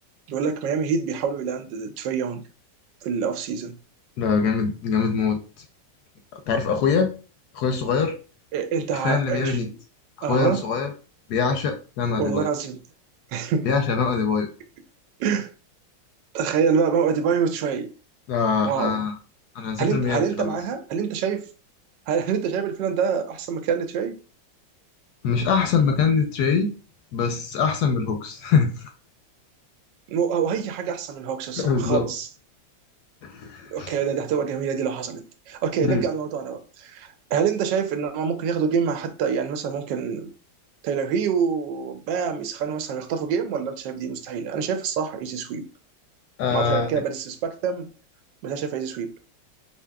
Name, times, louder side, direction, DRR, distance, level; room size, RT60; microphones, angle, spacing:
voice 1, 0.3-2.4 3.0-3.7 8.5-9.8 10.2-10.6 12.2-12.8 13.3-13.7 15.2-15.5 16.3-17.9 18.6-19.0 19.8-21.5 22.1-24.2 30.1-32.3 33.7-40.3 40.8-45.7 46.5-47.9 48.4-49.1, right 6 dB, 80° right, 1.2 m, -26 dB
voice 2, 4.2-5.4 6.5-7.1 7.5-8.1 8.9-9.7 10.2-10.9 11.3-12.5 13.6-14.5 18.3-19.1 19.6-20.6 25.2-26.7 27.1-28.8 31.6-32.1 33.2-33.9 35.8-36.0 46.4-46.9, left 5 dB, 70° left, 1.0 m, -23 dB
4.7 x 2.8 x 2.2 m
omnidirectional pair, 2.0 m